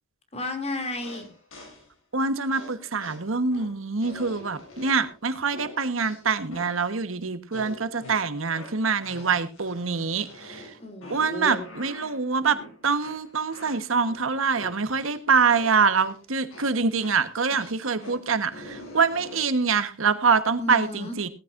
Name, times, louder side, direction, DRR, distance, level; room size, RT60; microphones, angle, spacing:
voice 1, 0.3-1.3 10.8-11.7 20.6-21.2, left 2 dB, 30° left, 6 dB, 2.8 m, -33 dB
sound 1, 1.0-1.9 2.5-5.2 5.5-6.9 7.5-15.2 15.5-16.2 16.5-19.6, left 2 dB, 85° left, 7.7 m, -45 dB
voice 2, 2.1-10.7 11.1-12.6 12.8-21.3, right 5 dB, 80° right, 12 dB, 1.3 m, -25 dB
17.5 x 14.5 x 2.6 m, 0.30 s
head